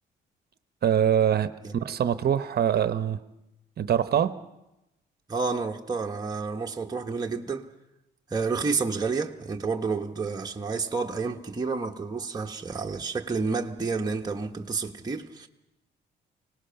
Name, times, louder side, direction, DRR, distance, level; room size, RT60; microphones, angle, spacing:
voice 1, 0.8-3.2 3.8-4.3, right 9 dB, 55° right, 0.9 m, -24 dB
voice 2, 5.3-7.7 8.3-15.5, right 4 dB, 20° right, 1.2 m, -30 dB
24.5 x 19.0 x 5.8 m
cardioid pair, 90°, 20 cm